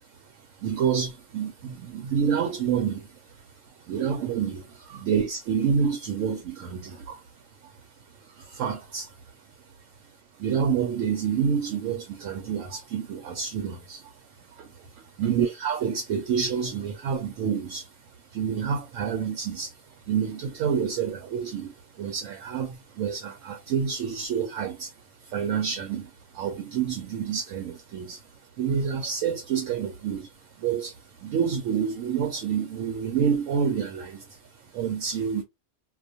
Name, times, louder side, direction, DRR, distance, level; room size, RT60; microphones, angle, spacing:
voice 1, 0.0-9.7 10.0-35.4, right 7 dB, 70° right, 0.9 m, -29 dB
2.4 x 2.3 x 2.6 m
omnidirectional pair, 1.5 m